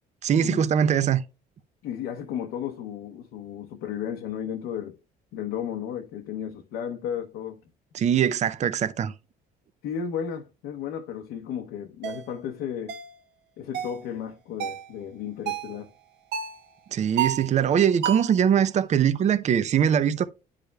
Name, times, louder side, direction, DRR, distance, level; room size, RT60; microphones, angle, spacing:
voice 1, 0.2-1.2 7.9-9.1 16.9-20.3, right 8 dB, 45° right, 0.6 m, -22 dB
voice 2, 1.8-5.0 5.3-7.6 9.8-12.9 13.6-15.9, left 8 dB, 90° left, 0.9 m, -34 dB
sound 1, 12.0-12.2 12.9-13.1 13.7-14.0 14.6-14.9 15.5-15.8 16.3-16.6 17.2-17.5 18.0-18.4, right 9 dB, 80° right, 1.0 m, -30 dB
10.5 x 4.9 x 2.3 m
cardioid pair, 110°, 17 cm